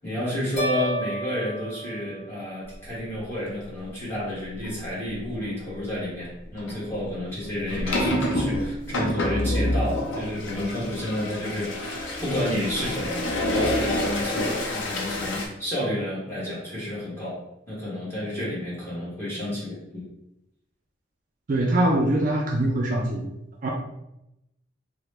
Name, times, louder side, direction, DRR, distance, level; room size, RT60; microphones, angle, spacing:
voice 1, 0.0-17.4 17.7-20.1, left 1 dB, 10° left, -9 dB, 1.2 m, -30 dB
sound 1, 0.6-2.8, right 2 dB, 35° left, 0.7 m, -32 dB
sound 2, 4.6-4.8 5.2-5.5 6.6-15.5, left 1 dB, 80° left, 0.5 m, -28 dB
voice 2, 21.5-23.3 23.6-23.7, right 1 dB, 45° right, -1 dB, 0.4 m, -23 dB
2.9 x 2.1 x 3.3 m, 0.85 s
head